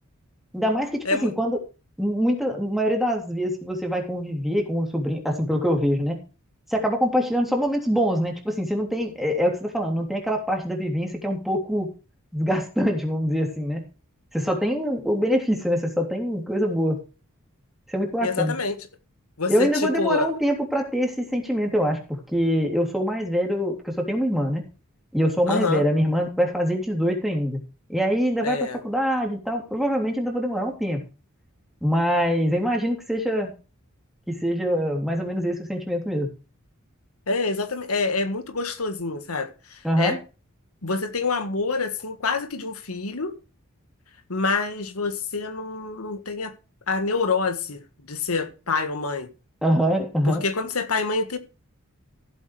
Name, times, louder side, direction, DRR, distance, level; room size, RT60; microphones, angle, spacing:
voice 1, 0.5-1.6 2.0-6.2 6.7-11.9 12.3-13.8 14.3-17.0 17.9-18.5 19.5-24.7 25.1-27.6 27.9-31.0 31.8-33.5 34.3-36.3 39.8-40.2 49.6-50.4, equal, ahead, 3.2 m, -24 dB
voice 2, 18.2-18.8 19.4-20.3 25.5-25.8 28.4-28.8 37.3-40.2 40.8-43.3 44.3-46.5 46.9-47.8 48.1-49.3 50.2-51.4, left 4 dB, 80° left, 1.6 m, -26 dB
15.0 x 8.2 x 3.3 m
head